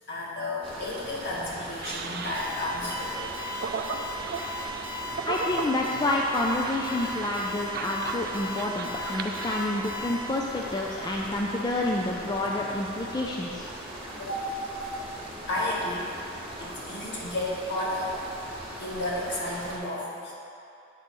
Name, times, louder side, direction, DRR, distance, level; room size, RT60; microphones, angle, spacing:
voice 1, 0.1-3.3 14.2-14.9 15.5-16.1 16.6-18.2 18.8-20.3, left 1 dB, 60° left, -6 dB, 1.8 m, -32 dB
sound 1, 0.6-19.8, right 1 dB, 25° right, 1.2 m, -40 dB
sound 2, 1.8-9.6, right 5 dB, 50° right, 0.4 m, -37 dB
Alarm, 2.3-10.1, left 3 dB, 10° right, 0.9 m, -37 dB
voice 2, 5.3-13.7, left 2 dB, 20° left, -1 dB, 0.4 m, -28 dB
8.8 x 4.0 x 5.3 m, 2.7 s
head